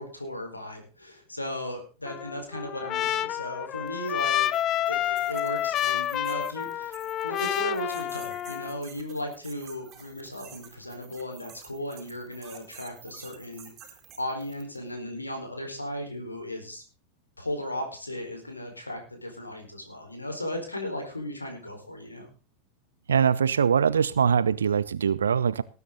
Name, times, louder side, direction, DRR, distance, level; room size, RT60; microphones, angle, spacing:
voice 1, 0.0-4.5 4.9-7.0 7.2-16.8 17.4-22.3, left 1 dB, 80° left, 3 dB, 4.5 m, -36 dB
Trumpet, 2.0-8.8, left 12 dB, 30° left, 0.7 m, -29 dB
sound 1, 3.9-14.8, right 8 dB, 30° right, 4.4 m, -50 dB
voice 2, 23.1-25.6, right 7 dB, 70° right, 18 dB, 0.7 m, -22 dB
19.0 x 9.6 x 3.9 m, 0.36 s
figure-of-eight pair, 90°, 0 cm